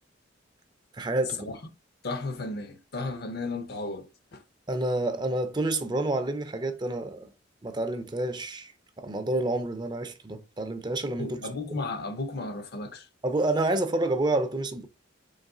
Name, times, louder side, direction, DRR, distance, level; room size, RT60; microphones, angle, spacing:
voice 1, 0.9-1.5 4.7-7.3 7.6-8.7 9.0-11.4 13.2-14.9, right 2 dB, 25° right, 0.5 m, -28 dB
voice 2, 2.0-4.4 11.2-13.1, left 2 dB, 55° left, 0.6 m, -34 dB
4.0 x 3.0 x 3.6 m
head